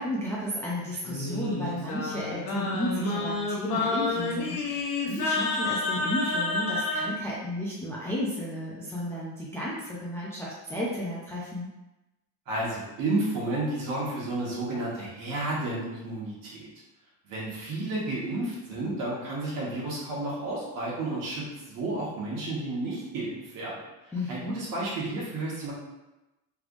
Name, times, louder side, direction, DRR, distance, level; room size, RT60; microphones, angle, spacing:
voice 1, 0.0-11.7 24.1-24.6, left 1 dB, 5° left, -7 dB, 0.4 m, -33 dB
Singing, 1.1-7.1, left 3 dB, 50° left, 0.8 m, -29 dB
voice 2, 12.5-16.7 17.2-25.7, right 2 dB, 50° right, -5 dB, 1.3 m, -32 dB
3.3 x 3.3 x 2.5 m, 1.0 s
cardioid pair, 140°, 41 cm